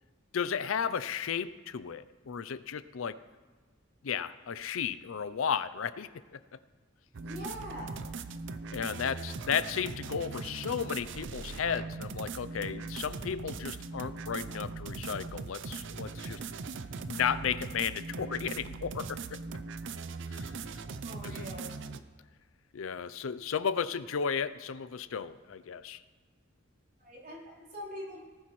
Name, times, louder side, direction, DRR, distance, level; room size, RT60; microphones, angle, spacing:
voice 1, 0.3-3.2 4.0-6.2 8.7-16.4 17.1-19.4 20.3-20.5 21.2-21.5 22.7-26.0, left 7 dB, 80° left, 15 dB, 0.5 m, -34 dB
sound 1, 7.1-22.0, right 4 dB, 65° right, 0.5 m, -40 dB
voice 2, 7.2-8.2 21.0-21.7 27.0-28.2, equal, 45° right, -5 dB, 3.8 m, -43 dB
18.5 x 9.8 x 3.2 m, 1.4 s
head